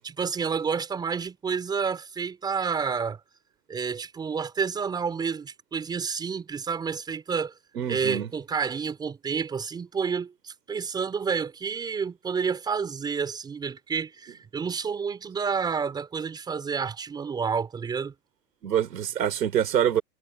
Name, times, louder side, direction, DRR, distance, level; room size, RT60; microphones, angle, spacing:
voice 1, 0.0-3.2 3.7-7.5 7.9-18.1, right 6 dB, 10° right, 5.4 m, -29 dB
voice 2, 7.8-8.3 18.6-20.0, right 10 dB, 85° right, 4.1 m, -25 dB
hypercardioid pair, 175°, 47 cm